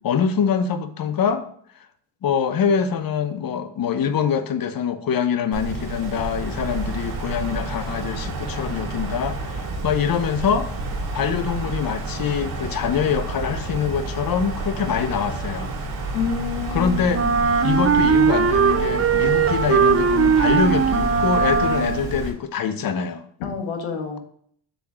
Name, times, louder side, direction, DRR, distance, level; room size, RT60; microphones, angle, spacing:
voice 1, 0.0-1.4 2.2-10.7 11.1-15.8 16.7-17.3 17.6-23.2, left 7 dB, 50° left, 11 dB, 0.9 m, -24 dB
Wind, 5.5-22.3, right 2 dB, 85° right, 2.6 m, -30 dB
voice 2, 16.1-17.4 23.4-24.2, left 7 dB, 80° left, 3 dB, 1.5 m, -28 dB
Wind instrument woodwind instrument, 17.1-22.2, right 6 dB, 30° right, 0.7 m, -19 dB
6.9 x 3.9 x 6.1 m, 0.63 s
supercardioid pair, 65°, 46 cm